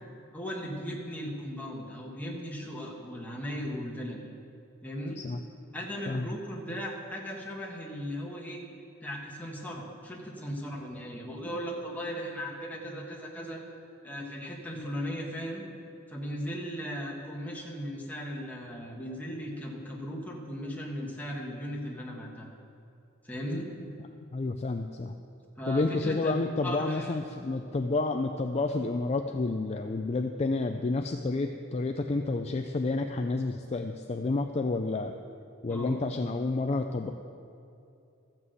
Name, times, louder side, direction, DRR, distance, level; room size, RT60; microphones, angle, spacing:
voice 1, 0.3-4.2 4.8-5.2 5.7-8.6 9.0-13.6 14.0-15.6 16.1-22.5 23.2-23.7 25.6-26.3 26.6-27.1 35.7-36.0, equal, 10° left, -2 dB, 1.6 m, -37 dB
voice 2, 24.3-25.1 25.7-35.2 35.6-37.1, left 3 dB, 30° left, 5 dB, 0.4 m, -30 dB
13.5 x 6.0 x 7.9 m, 2.6 s
head